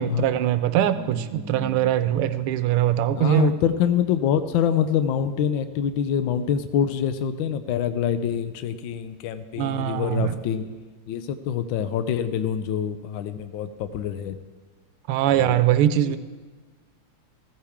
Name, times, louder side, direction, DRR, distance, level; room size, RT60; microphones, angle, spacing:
voice 1, 0.0-3.5 9.6-10.4 15.1-16.2, right 11 dB, 85° right, 12 dB, 1.5 m, -22 dB
sound 1, 0.6-6.4, equal, 15° right, 2.2 m, -43 dB
voice 2, 3.2-10.8 11.1-14.4 15.2-15.6 16.0-16.1, left 8 dB, 70° left, 11 dB, 1.4 m, -25 dB
16.0 x 14.5 x 3.5 m, 1.4 s
omnidirectional pair, 2.4 m